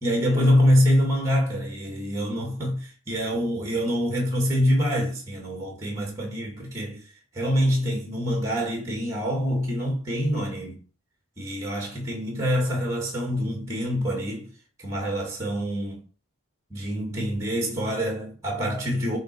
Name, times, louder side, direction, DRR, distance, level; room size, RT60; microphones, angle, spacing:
voice 1, 0.0-7.0 7.3-10.8 11.4-14.5 14.8-16.0 16.7-19.2, equal, 15° right, 2.1 m, -25 dB
7.7 x 4.0 x 6.8 m
head